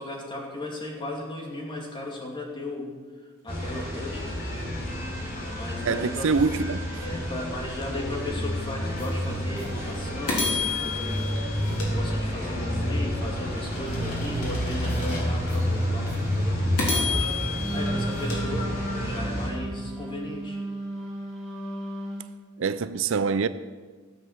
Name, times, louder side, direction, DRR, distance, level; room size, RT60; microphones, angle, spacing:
voice 1, 0.0-2.9 3.4-4.4 5.5-6.3 7.0-11.6 11.9-18.7 19.0-20.6, left 1 dB, 20° left, 2.6 m, -36 dB
sound 1, 3.5-19.5, equal, 40° left, 3.7 m, -29 dB
voice 2, 5.8-7.0 22.6-23.5, right 5 dB, 60° right, 0.4 m, -25 dB
sound 2, 9.0-9.1 9.6-9.7 10.3-12.6 13.1-15.6 16.1-16.2 16.8-19.1, left 4 dB, 85° left, 3.8 m, -32 dB
Wind instrument woodwind instrument, 17.5-22.3, right 1 dB, ahead, 3.6 m, -34 dB
15.5 x 7.7 x 7.5 m
head